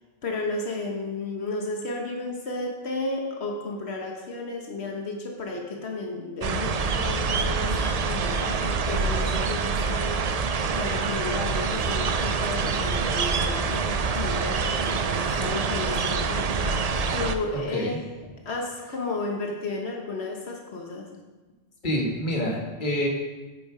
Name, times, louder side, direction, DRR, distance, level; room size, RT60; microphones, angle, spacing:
voice 1, 0.2-10.2 10.7-18.0 18.4-21.1, left 3 dB, 85° left, 1 dB, 1.5 m, -33 dB
sound 1, 6.4-17.3, right 4 dB, 45° right, 0.6 m, -26 dB
voice 2, 21.8-23.1, equal, 50° left, -1 dB, 1.7 m, -27 dB
10.0 x 7.0 x 4.9 m, 1.2 s
omnidirectional pair, 1.1 m